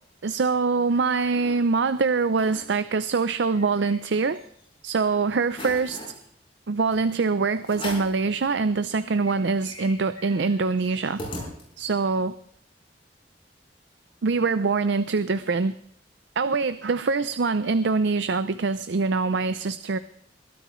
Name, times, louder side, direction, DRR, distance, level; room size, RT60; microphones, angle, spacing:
voice 1, 0.2-4.4 4.8-6.0 6.7-11.2 11.8-12.3 14.2-15.7 16.4-20.0, right 4 dB, 85° right, 13 dB, 0.6 m, -24 dB
sound 1, 0.9-1.5 2.0-2.1 2.3-2.6 3.0-4.6 5.0-5.1 5.5-6.2 6.9-7.0 7.6-8.2 8.7-8.8 9.0-12.0, left 1 dB, 30° left, 5.6 m, -40 dB
22.0 x 13.0 x 3.2 m, 0.66 s
head